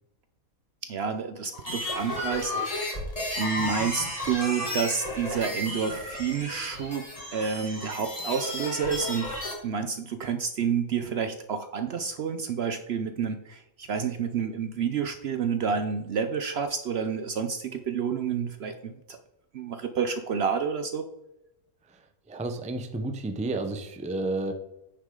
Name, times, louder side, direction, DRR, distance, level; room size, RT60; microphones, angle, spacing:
voice 1, 0.9-3.0 3.4-7.1 7.3-9.4 9.6-19.2 19.5-21.0, right 6 dB, 60° right, 8 dB, 0.7 m, -29 dB
sound 1, 1.5-9.5, left 1 dB, 25° left, 2.5 m, -33 dB
voice 2, 22.3-24.5, right 2 dB, 10° right, 5 dB, 0.4 m, -31 dB
9.5 x 6.5 x 3.7 m, 0.87 s
omnidirectional pair, 1.5 m